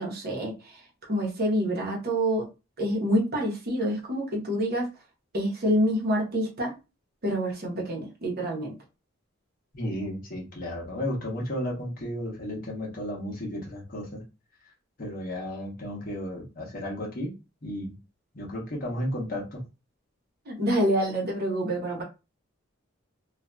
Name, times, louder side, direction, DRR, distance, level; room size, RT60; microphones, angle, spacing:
voice 1, 0.0-2.5 2.8-4.9 5.3-6.7 7.2-8.8 20.5-22.0, equal, 50° right, -1 dB, 0.9 m, -27 dB
voice 2, 9.7-14.2 15.0-17.3 17.6-18.0 18.3-19.6, equal, 45° left, -1 dB, 0.9 m, -33 dB
2.6 x 2.4 x 2.2 m, 0.28 s
head